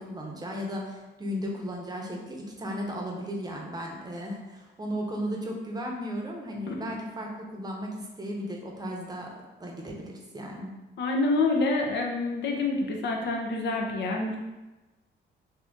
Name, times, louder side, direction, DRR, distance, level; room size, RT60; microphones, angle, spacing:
voice 1, 0.0-9.3 9.6-10.7, equal, 20° right, 0 dB, 0.7 m, -35 dB
voice 2, 11.0-14.4, left 3 dB, 60° left, 1 dB, 0.7 m, -27 dB
2.8 x 2.6 x 3.4 m, 1.1 s
cardioid pair, 90°, 20 cm